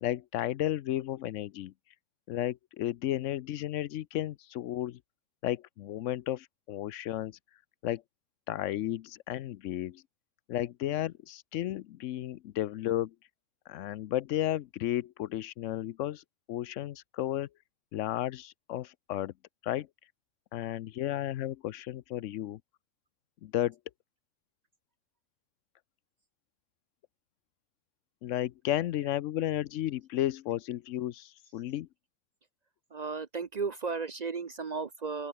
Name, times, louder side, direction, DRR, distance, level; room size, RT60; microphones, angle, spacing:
voice 1, 0.0-1.7 2.3-5.0 5.4-7.4 7.8-8.0 8.5-10.0 10.5-13.1 13.7-17.5 17.9-19.3 19.6-19.9 20.5-22.6 23.4-23.8 28.2-31.9, left 13 dB, 80° left, 0.9 m, -33 dB
voice 2, 32.9-35.3, right 4 dB, 45° right, 0.6 m, -34 dB
open air
omnidirectional pair, 1.3 m